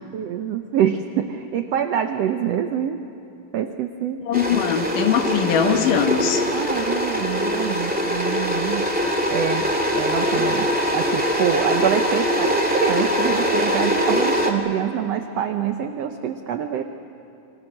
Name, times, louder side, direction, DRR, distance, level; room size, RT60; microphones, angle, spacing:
voice 1, 0.0-3.0 3.5-4.2 6.5-9.0 9.3-9.7 9.9-16.8, right 9 dB, 85° right, 7 dB, 1.4 m, -25 dB
voice 2, 4.3-6.5, left 8 dB, 70° left, 6 dB, 2.8 m, -21 dB
sound 1, 4.3-14.5, equal, 5° right, 1.2 m, -22 dB
29.5 x 25.0 x 6.5 m, 2.6 s
omnidirectional pair, 4.0 m